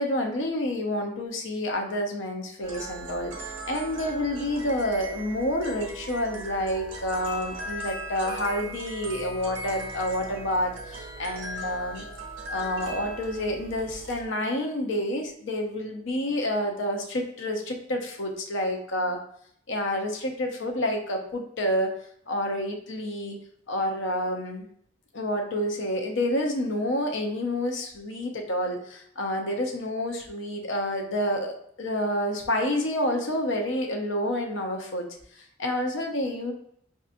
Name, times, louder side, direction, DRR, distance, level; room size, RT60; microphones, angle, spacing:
voice 1, 0.0-12.0 12.5-19.2 19.7-21.9 22.3-23.4 23.7-24.7 25.1-35.1 35.3-36.5, left 1 dB, 70° left, 3 dB, 0.7 m, -29 dB
sound 1, 2.6-14.2, right 1 dB, 80° right, 0.9 m, -39 dB
4.5 x 2.7 x 2.5 m, 0.65 s
head